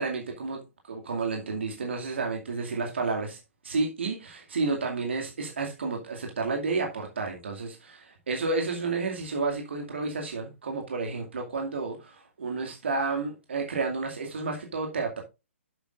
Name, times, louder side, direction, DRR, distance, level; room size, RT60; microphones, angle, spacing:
voice 1, 0.0-3.4 3.6-15.2, right 3 dB, 55° right, 2.3 m, -31 dB
10.5 x 8.2 x 2.5 m
figure-of-eight pair, 130°, 7 cm